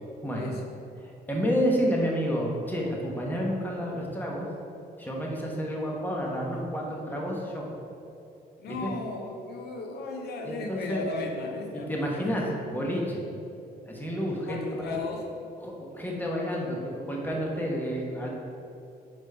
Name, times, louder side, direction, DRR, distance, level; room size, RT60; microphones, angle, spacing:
voice 1, 0.2-0.5 1.0-4.4 5.0-7.7 8.7-8.9 10.4-11.1 11.7-13.3 13.8-14.6 14.9-15.0 15.6-18.3, equal, 10° left, -2 dB, 1.1 m, -30 dB
voice 2, 8.6-12.6 14.4-15.5, left 3 dB, 75° left, 2 dB, 0.7 m, -35 dB
5.0 x 4.3 x 5.5 m, 2.7 s
cardioid pair, 110°, 17 cm